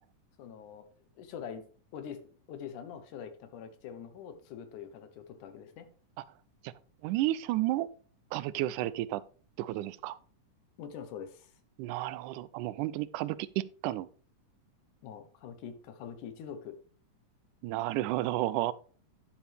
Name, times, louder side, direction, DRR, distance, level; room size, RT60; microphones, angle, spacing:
voice 1, 0.4-0.9 1.2-1.6 1.9-5.9 8.8-8.9 10.8-11.6 15.0-16.8, left 8 dB, 80° left, 2.6 m, -44 dB
voice 2, 7.0-7.9 8.3-9.2 9.6-10.2 11.8-14.1 17.6-18.7, right 15 dB, 90° right, 2.1 m, -32 dB
10.5 x 7.2 x 3.4 m
omnidirectional pair, 3.5 m